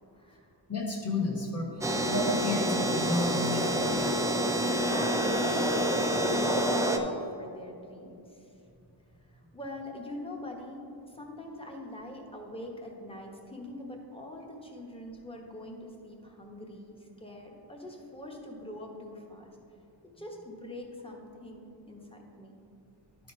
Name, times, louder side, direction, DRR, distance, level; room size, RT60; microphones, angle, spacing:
voice 1, 0.2-0.5 4.9-8.4 9.5-10.8 11.1-19.6 20.0-21.6 21.9-22.5, left 1 dB, 10° left, 1 dB, 1.0 m, -43 dB
voice 2, 0.7-4.0, left 2 dB, 35° left, -1 dB, 1.6 m, -31 dB
sound 1, 1.8-7.0, right 1 dB, 5° right, 0.4 m, -27 dB
12.0 x 4.3 x 4.3 m, 2.7 s
wide cardioid pair, 135°, 45 cm